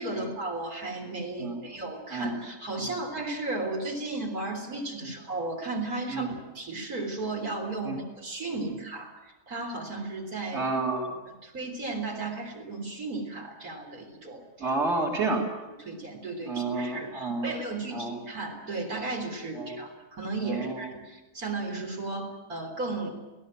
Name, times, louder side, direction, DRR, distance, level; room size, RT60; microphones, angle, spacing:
voice 1, 0.0-9.1 9.5-10.7 11.4-14.7 15.8-23.1, right 2 dB, 75° right, 1 dB, 4.2 m, -34 dB
voice 2, 10.5-11.2 14.6-15.5 16.5-17.5 17.9-18.2 19.5-19.8 20.4-20.9, right 3 dB, 45° right, -1 dB, 3.9 m, -30 dB
27.5 x 17.5 x 7.6 m, 1.1 s
omnidirectional pair, 1.6 m